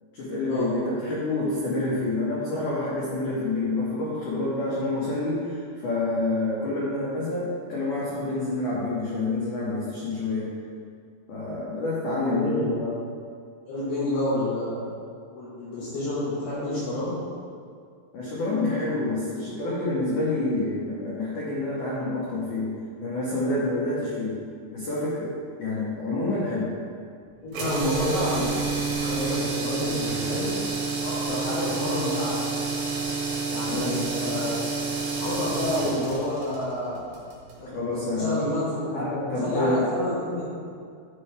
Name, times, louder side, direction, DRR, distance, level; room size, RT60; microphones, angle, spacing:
voice 1, 0.1-10.5 11.3-12.5 18.1-22.7 23.0-24.3 24.7-26.7 33.7-33.9 37.7-38.3 39.0-39.1 39.3-39.9, left 2 dB, 90° left, -7 dB, 1.7 m, -28 dB
voice 2, 12.3-12.9 13.7-14.8 15.3-17.2 26.1-26.2 27.4-28.6 28.9-30.6 31.0-32.5 33.5-34.6 35.2-37.1 37.6-40.7, left 1 dB, 65° left, -9 dB, 3.0 m, -29 dB
sound 1, 27.5-37.6, right 4 dB, 70° right, 3.3 m, -29 dB
10.5 x 5.5 x 3.4 m, 2.3 s
omnidirectional pair, 5.4 m